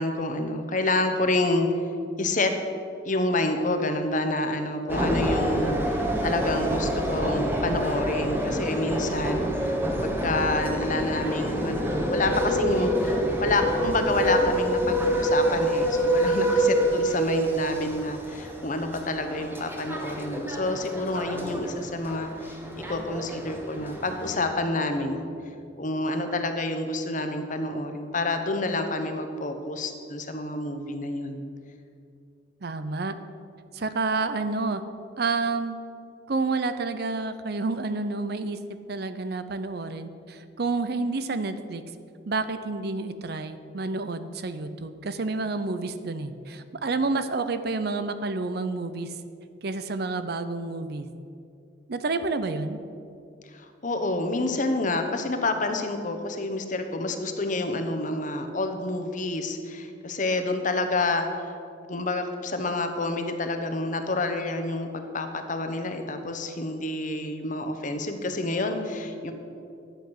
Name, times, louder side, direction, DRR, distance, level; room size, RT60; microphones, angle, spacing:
voice 1, 0.0-1.7 2.2-2.5 3.0-25.3 25.8-31.4 53.5-61.5 61.9-69.3, left 2 dB, 45° left, 6 dB, 1.0 m, -28 dB
sound 1, 4.9-24.4, right 1 dB, 10° right, 1.1 m, -27 dB
voice 2, 32.6-33.2 33.7-34.8 35.2-35.8 36.3-38.6 38.9-41.8 42.3-49.1 49.6-51.1 51.9-52.8, right 3 dB, 55° right, 11 dB, 0.6 m, -29 dB
11.5 x 8.0 x 6.4 m, 2.5 s
head